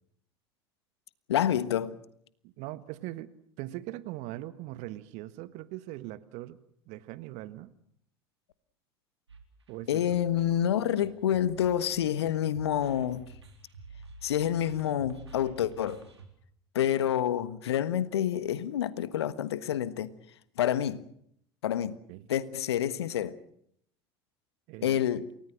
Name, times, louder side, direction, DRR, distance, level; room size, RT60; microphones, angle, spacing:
voice 1, 1.3-2.0 9.9-13.3 14.2-16.0 16.7-20.1 20.6-21.0 21.6-22.0 22.3-23.4 24.8-25.3, left 10 dB, 75° left, 1.4 m, -28 dB
voice 2, 2.4-3.3 3.6-6.6 6.9-7.7 9.7-10.0 22.1-22.3 24.7-25.0, right 16 dB, 55° right, 1.6 m, -40 dB
sound 1, 9.3-16.3, right 3 dB, 90° right, 3.9 m, -50 dB
29.0 x 18.5 x 7.6 m
hypercardioid pair, 75°, 14 cm